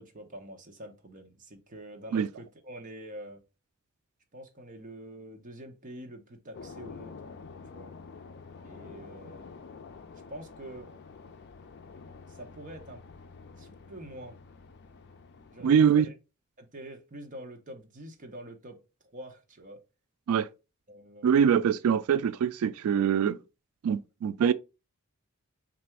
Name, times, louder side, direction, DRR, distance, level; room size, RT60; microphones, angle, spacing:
voice 1, 0.0-3.4 4.3-7.2 7.7-8.0 8.6-9.5 10.3-10.9 12.3-13.0 13.6-14.4 15.5-16.1 16.6-19.8 20.9-21.4, right 1 dB, 40° right, 0.9 m, -46 dB
sound 1, 6.5-15.9, left 4 dB, 50° left, 0.4 m, -48 dB
voice 2, 15.6-16.1 20.3-20.5 21.2-23.4 23.8-24.5, right 7 dB, 85° right, 0.3 m, -23 dB
3.3 x 2.6 x 4.5 m
head